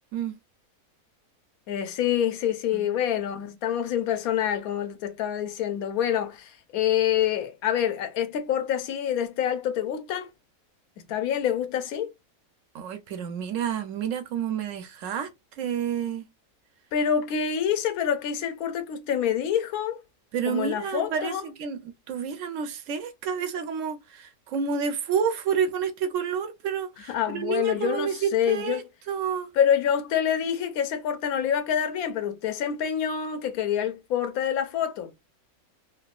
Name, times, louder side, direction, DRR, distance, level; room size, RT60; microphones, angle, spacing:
voice 1, 1.7-10.3 11.1-12.1 16.9-20.0 20.5-21.4 27.0-28.8 29.5-35.2, left 9 dB, 80° left, 1.1 m, -26 dB
voice 2, 12.7-15.3 15.6-16.3 20.3-28.8 29.1-29.5, right 7 dB, 70° right, 0.9 m, -29 dB
3.4 x 2.0 x 2.3 m
omnidirectional pair, 1.5 m